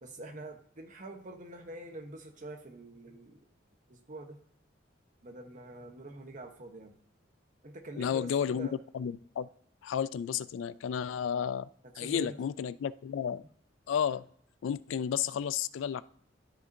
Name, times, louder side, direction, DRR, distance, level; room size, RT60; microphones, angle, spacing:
voice 1, 0.0-3.4 3.9-4.4 5.2-7.0 7.6-8.8 12.0-12.4, right 2 dB, 45° right, 4 dB, 1.0 m, -45 dB
voice 2, 8.0-8.7 8.9-9.5 9.8-11.7 12.0-13.4 13.9-14.2 14.6-16.0, left 8 dB, 80° left, 17 dB, 0.3 m, -32 dB
12.5 x 5.0 x 2.7 m, 0.63 s
head